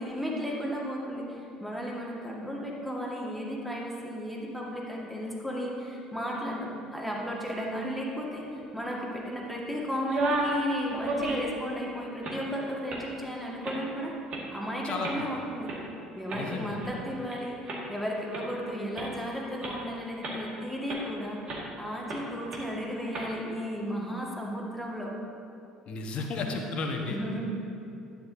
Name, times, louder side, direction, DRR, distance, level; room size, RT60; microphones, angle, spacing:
voice 1, 0.0-14.1 14.5-15.7 16.2-17.6 17.9-21.4 21.8-25.2 27.1-27.4, equal, ahead, -3 dB, 2.0 m, -34 dB
sound 1, 10.0-10.6 10.9-11.6 12.1-12.4 12.9-13.1 13.6-13.9 14.3-14.4 15.0-15.2 15.7-15.8 16.3-17.4 17.7-17.8 18.3-18.4 18.9-19.1 19.6-19.7 20.2-20.5 20.9-21.0 21.5-21.7 22.1-22.2 22.5-22.6 23.1-23.3, right 2 dB, 45° right, 2.1 m, -32 dB
voice 2, 16.3-16.8 25.9-27.2, left 3 dB, 45° left, 2 dB, 1.3 m, -33 dB
11.0 x 10.0 x 2.8 m, 2.6 s
figure-of-eight pair, 60°, 3 cm